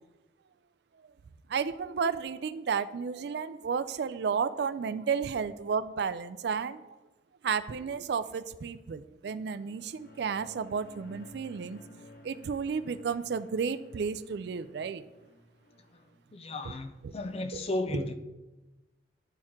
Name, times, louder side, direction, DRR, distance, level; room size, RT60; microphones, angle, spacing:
voice 1, 1.5-6.9 7.4-11.8 12.2-15.0 16.6-16.7 17.0-17.1 17.5-17.6 17.9-18.0, right 6 dB, 60° right, 0.3 m, -32 dB
sound 1, 9.5-16.2, equal, 50° left, 1.0 m, -54 dB
voice 2, 16.3-18.1, left 2 dB, 30° left, 0.5 m, -34 dB
11.0 x 4.4 x 3.6 m
head